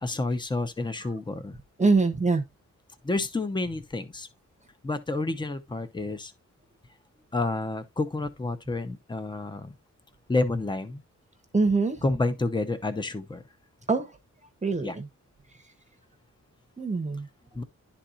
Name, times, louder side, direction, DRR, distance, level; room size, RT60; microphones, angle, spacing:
voice 1, 0.0-1.5 3.0-4.3 4.8-6.3 7.3-9.7 10.3-11.0 12.0-13.4 14.8-15.0 17.6-17.7, left 2 dB, 15° left, 0.7 m, -29 dB
voice 2, 1.8-2.4 11.5-12.0 13.9-14.1 14.6-15.1 16.8-17.3, right 3 dB, 25° right, 0.8 m, -24 dB
11.0 x 4.2 x 2.4 m
wide cardioid pair, 160°, 30 cm